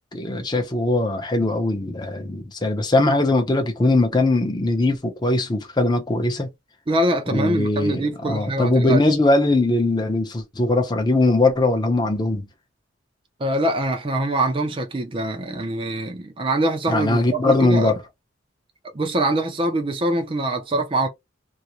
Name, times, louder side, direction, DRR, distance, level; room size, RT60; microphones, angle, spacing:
voice 1, 0.1-6.5 7.3-12.5 16.9-17.9, left 2 dB, 20° left, 0.6 m, -20 dB
voice 2, 6.9-9.0 13.4-17.9 18.9-21.1, right 1 dB, 25° right, 0.5 m, -24 dB
2.5 x 2.1 x 2.8 m
head